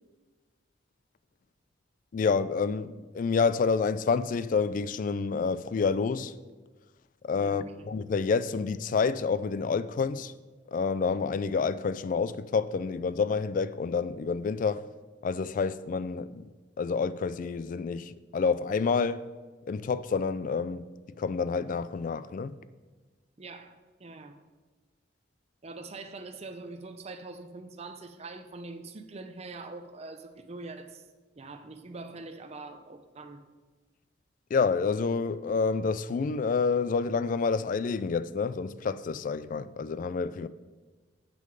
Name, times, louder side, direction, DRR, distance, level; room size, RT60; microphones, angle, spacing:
voice 1, 2.1-6.3 7.2-10.3 10.7-14.8 15.2-16.5 16.8-19.3 19.7-20.9 21.2-22.6 34.5-40.5, left 5 dB, 45° left, 0.3 m, -28 dB
voice 2, 7.4-7.9 23.4-24.4 25.6-31.0 31.4-33.4, right 3 dB, 35° right, 0.6 m, -43 dB
7.8 x 6.3 x 5.2 m
head